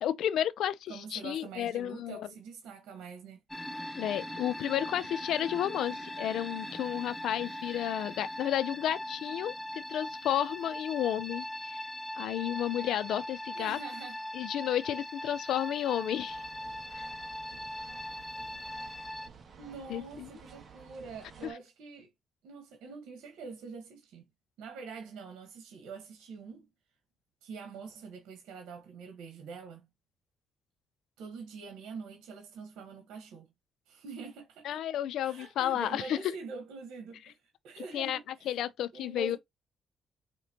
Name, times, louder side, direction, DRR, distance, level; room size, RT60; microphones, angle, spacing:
voice 1, 0.0-2.3 3.9-11.8 12.1-13.8 14.3-16.4 16.9-17.1 19.9-20.3 21.4-21.5 34.6-36.2 37.9-38.2 38.5-39.4, left 11 dB, 80° left, 0.6 m, -32 dB
voice 2, 0.9-3.4 13.5-14.2 19.6-22.1 22.4-24.3 24.6-26.7 27.4-29.9 31.2-33.5 33.9-34.8 35.2-38.6 38.9-39.4, right 5 dB, 85° right, 1.3 m, -45 dB
sound 1, 3.5-19.3, left 1 dB, 5° left, 0.7 m, -40 dB
sound 2, 16.3-21.5, right 6 dB, 45° right, 1.3 m, -53 dB
5.1 x 3.3 x 2.9 m
cardioid pair, 90°, 0 cm